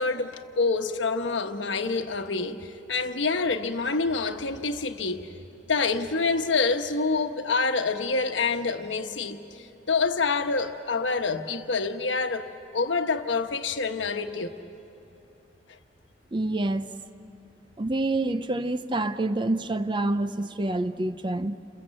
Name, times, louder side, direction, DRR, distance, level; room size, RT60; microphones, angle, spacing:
voice 1, 0.0-5.3 5.7-9.4 9.9-12.5 12.7-14.5, left 4 dB, 80° left, 1.2 m, -27 dB
voice 2, 16.3-16.9 17.8-21.6, right 2 dB, 25° right, 0.6 m, -27 dB
29.0 x 22.0 x 7.6 m
head